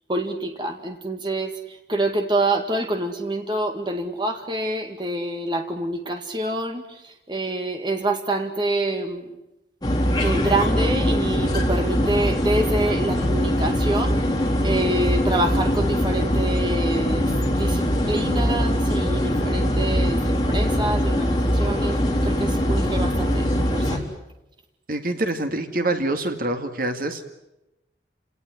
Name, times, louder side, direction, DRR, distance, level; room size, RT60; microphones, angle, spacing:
voice 1, 0.1-9.3 10.2-14.2 14.6-24.0, right 2 dB, 25° right, 5 dB, 2.1 m, -27 dB
sound 1, 9.8-24.0, equal, 25° left, 3.9 m, -22 dB
voice 2, 24.9-27.3, right 2 dB, 50° right, 6 dB, 2.1 m, -25 dB
29.0 x 18.5 x 9.8 m, 0.94 s
head